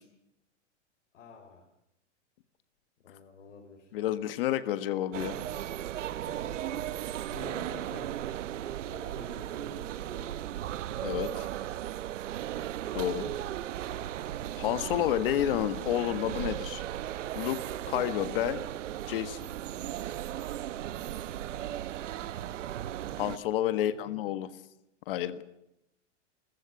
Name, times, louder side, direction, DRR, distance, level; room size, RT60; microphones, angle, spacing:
voice 1, 1.1-1.7 3.0-3.9 6.3-8.1 8.8-10.5 23.7-24.3, left 4 dB, 85° left, 0 dB, 5.6 m, -49 dB
voice 2, 3.9-5.4 11.0-11.5 12.9-13.3 14.6-16.8 17.3-17.6 17.9-18.6 19.1-19.4 23.2-24.5 25.1-25.4, left 12 dB, 50° left, 11 dB, 1.6 m, -30 dB
sound 1, 5.1-23.4, right 12 dB, 85° right, 1.0 m, -36 dB
29.5 x 15.0 x 8.5 m, 0.84 s
supercardioid pair, 165°, 36 cm